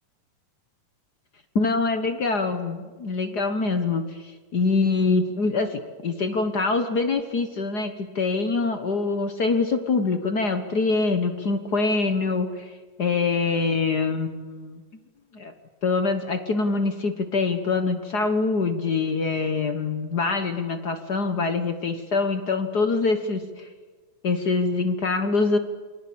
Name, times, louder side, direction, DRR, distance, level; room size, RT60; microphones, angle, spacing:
voice 1, 1.5-12.7 13.0-14.8 15.3-15.5 15.8-23.7 24.2-25.6, left 4 dB, 65° left, 8 dB, 1.0 m, -24 dB
28.5 x 22.5 x 8.6 m, 1.4 s
omnidirectional pair, 3.7 m